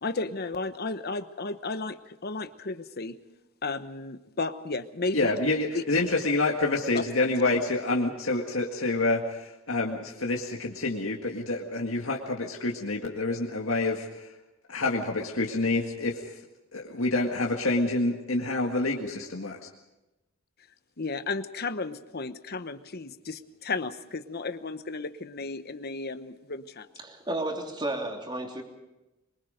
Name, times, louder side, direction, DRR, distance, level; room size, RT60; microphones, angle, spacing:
voice 1, 0.0-3.2 3.6-5.3 5.7-5.8 6.9-7.0 21.0-26.9, left 3 dB, 50° left, 10 dB, 1.0 m, -33 dB
voice 2, 5.1-14.3 14.7-16.4 16.7-19.6, left 2 dB, 70° left, 0 dB, 1.9 m, -27 dB
voice 3, 27.0-28.6, right 1 dB, 20° right, 2 dB, 3.2 m, -32 dB
24.5 x 23.5 x 5.2 m, 1.0 s
head